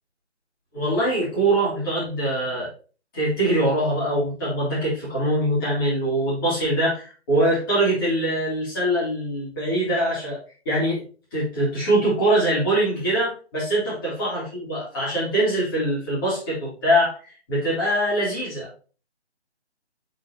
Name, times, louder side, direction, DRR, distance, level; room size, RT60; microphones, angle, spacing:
voice 1, 0.7-2.7 3.1-10.4 10.6-11.0 11.3-17.2 17.5-18.7, right 1 dB, 20° left, -8 dB, 3.5 m, -23 dB
7.9 x 5.5 x 2.9 m, 0.37 s
hypercardioid pair, 170°, 34 cm